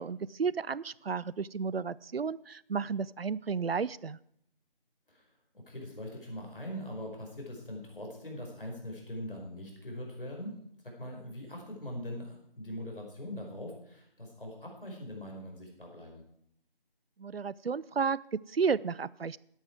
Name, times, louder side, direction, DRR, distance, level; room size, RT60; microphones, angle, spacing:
voice 1, 0.0-4.2 17.2-19.4, right 5 dB, 80° right, 22 dB, 0.5 m, -32 dB
voice 2, 5.5-10.6 10.8-16.2, left 1 dB, 65° left, 0 dB, 5.0 m, -42 dB
14.0 x 10.0 x 4.7 m, 0.72 s
figure-of-eight pair, 170°, 29 cm